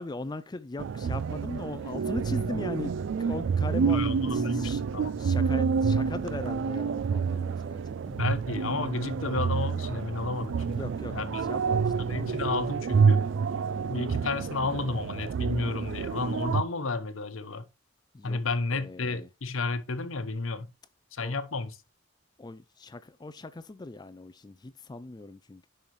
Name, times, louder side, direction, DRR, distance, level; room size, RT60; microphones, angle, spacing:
voice 1, 0.0-2.9 3.2-4.8 5.2-8.2 10.7-12.4 18.1-18.4 18.7-19.3 21.2-21.3 22.4-25.7, left 2 dB, 20° left, 0.3 m, -39 dB
sound 1, 0.8-16.6, right 5 dB, 65° right, 0.3 m, -28 dB
voice 2, 3.9-5.1 8.1-11.4 12.1-13.2 13.9-17.7 18.2-20.7 21.1-21.7, left 3 dB, 80° left, 1.0 m, -32 dB
10.5 x 5.6 x 3.1 m
head